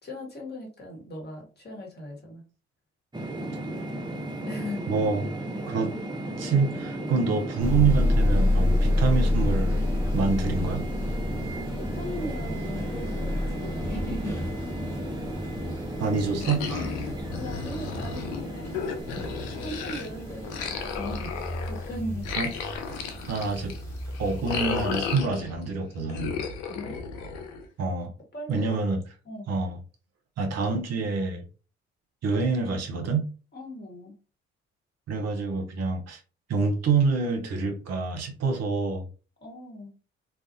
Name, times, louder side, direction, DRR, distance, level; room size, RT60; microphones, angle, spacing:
voice 1, 0.0-2.4 4.4-4.9 11.7-14.5 17.3-18.8 19.6-21.3 21.7-22.3 26.7-27.0 28.3-28.8 29.2-29.5 33.5-34.1 39.4-39.9, left 1 dB, 35° left, 1.3 m, -38 dB
sound 1, 3.1-22.3, right 1 dB, 15° right, 0.7 m, -35 dB
voice 2, 4.9-5.3 5.7-5.9 6.4-9.8 10.1-10.8 16.0-16.9 22.4-22.5 23.3-23.7 24.2-26.4 27.8-28.1 28.5-29.0 29.5-29.8 30.4-31.4 32.2-33.3 35.1-36.2 36.5-39.0, right 4 dB, 55° right, 0.7 m, -26 dB
sound 2, 7.6-25.2, left 1 dB, 10° left, 1.3 m, -30 dB
sound 3, 16.4-20.1 20.4-25.7 26.1-27.8, left 6 dB, 85° left, 0.5 m, -34 dB
2.4 x 2.2 x 2.7 m
hypercardioid pair, 45°, 30 cm